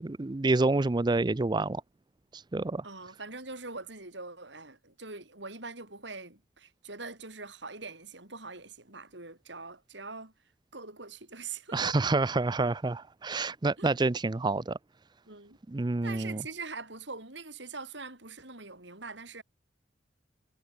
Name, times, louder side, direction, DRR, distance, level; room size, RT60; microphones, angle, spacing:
voice 1, 0.0-1.8 2.3-2.8 11.7-14.8 15.7-16.4, right 3 dB, 25° right, 0.5 m, -28 dB
voice 2, 2.8-10.3 10.7-12.0 13.8-13.9 15.3-15.6 16.0-19.4, right 4 dB, 70° right, 7.6 m, -43 dB
head